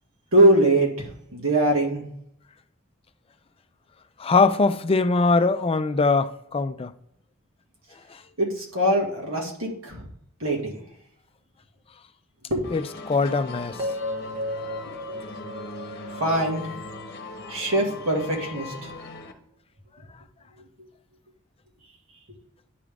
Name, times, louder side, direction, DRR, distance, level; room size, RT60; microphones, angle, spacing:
voice 1, 0.3-2.1 8.4-10.1 10.4-10.8 12.5-12.7 14.2-14.4 16.1-16.7 17.5-18.9, right 1 dB, 80° right, 2.1 m, -22 dB
voice 2, 4.2-6.9 12.7-13.8, left 3 dB, 30° left, 0.4 m, -22 dB
sound 1, 12.6-19.3, left 3 dB, 50° left, 0.9 m, -39 dB
sound 2, 13.8-17.9, left 1 dB, 30° right, 1.6 m, -35 dB
10.5 x 3.7 x 3.5 m
head